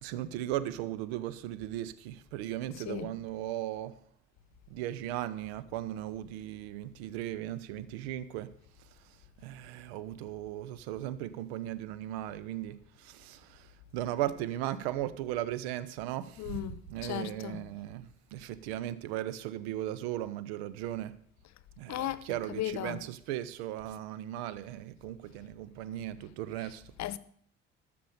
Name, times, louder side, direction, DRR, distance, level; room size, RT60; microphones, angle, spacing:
voice 1, 0.0-4.0 4.7-8.5 9.4-16.6 16.9-21.2 21.8-26.8, right 13 dB, 80° right, 0.7 m, -37 dB
voice 2, 16.4-17.6 21.9-23.0 27.0-27.2, left 12 dB, 60° left, 0.8 m, -36 dB
13.0 x 6.9 x 6.7 m
hypercardioid pair, 50°, 31 cm